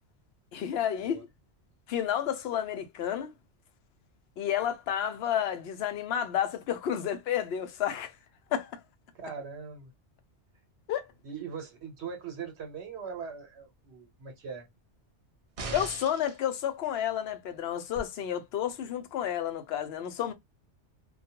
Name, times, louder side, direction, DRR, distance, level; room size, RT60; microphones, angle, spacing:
voice 1, 0.5-1.3 1.9-3.3 4.4-8.1 8.5-8.8 10.9-11.1 15.7-20.3, left 10 dB, 65° left, 0.7 m, -31 dB
voice 2, 9.1-9.9 11.2-14.7, right 6 dB, 70° right, 1.1 m, -41 dB
sound 1, 15.6-16.4 18.0-18.1, right 3 dB, 50° right, 0.4 m, -38 dB
2.3 x 2.2 x 2.7 m
omnidirectional pair, 1.2 m